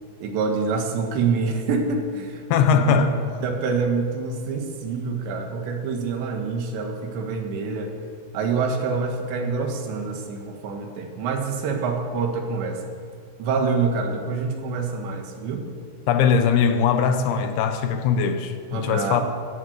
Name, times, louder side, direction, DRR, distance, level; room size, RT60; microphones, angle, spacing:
voice 1, 0.2-2.4 2.7-3.0 3.4-7.9 8.3-12.8 13.4-15.7 18.7-19.2, right 4 dB, 80° right, 3 dB, 3.8 m, -26 dB
voice 2, 2.5-3.2 16.1-19.2, left 6 dB, 75° left, 8 dB, 2.7 m, -20 dB
14.0 x 11.5 x 8.1 m, 2.1 s
omnidirectional pair, 5.0 m